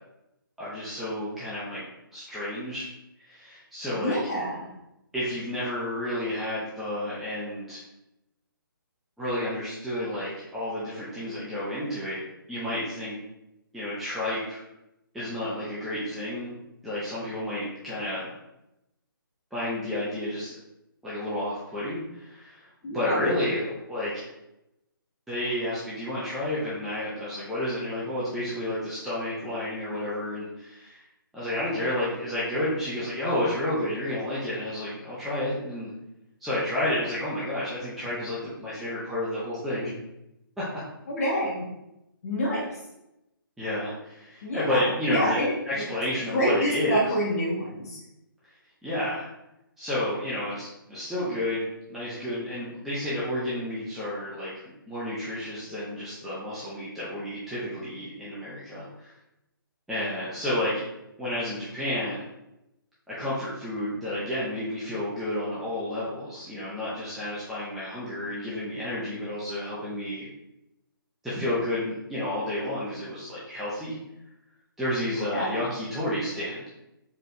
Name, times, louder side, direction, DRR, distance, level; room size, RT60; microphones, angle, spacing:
voice 1, 0.6-1.8 2.1-2.8 3.2-4.2 5.1-7.8 9.2-12.2 12.5-13.2 13.7-14.6 15.1-18.3 19.5-20.6 21.0-24.2 25.3-31.0 31.3-35.9 36.4-39.9 40.6-40.7 43.6-47.1 48.8-49.3 49.8-54.5 54.9-59.1 59.9-60.9 61.2-62.3 63.1-70.3 71.2-74.0 74.8-76.7, left 1 dB, ahead, -11 dB, 0.5 m, -31 dB
voice 2, 3.9-4.7 22.8-23.3 41.1-41.7 42.2-42.7 44.4-44.8 45.1-45.8 46.3-48.0 75.2-75.6, equal, 40° left, -4 dB, 1.0 m, -27 dB
4.4 x 3.1 x 2.6 m, 0.90 s
hypercardioid pair, 155°, 12 cm